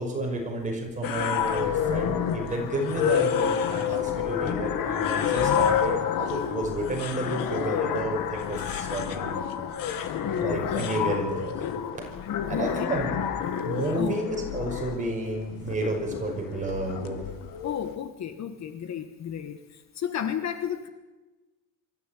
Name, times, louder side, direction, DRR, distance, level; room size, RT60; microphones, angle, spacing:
voice 1, 0.0-9.4 9.9-11.5 11.9-12.1 12.5-13.2 13.6-17.2, right 1 dB, 20° right, 0 dB, 5.7 m, -31 dB
sound 1, 1.0-17.9, left 8 dB, 70° left, 1.8 m, -29 dB
voice 2, 10.2-11.2 12.3-12.9 14.0-14.2 17.6-20.9, left 9 dB, 50° left, 9 dB, 1.4 m, -33 dB
24.0 x 13.5 x 9.3 m, 1.2 s
cardioid pair, 175°, 35 cm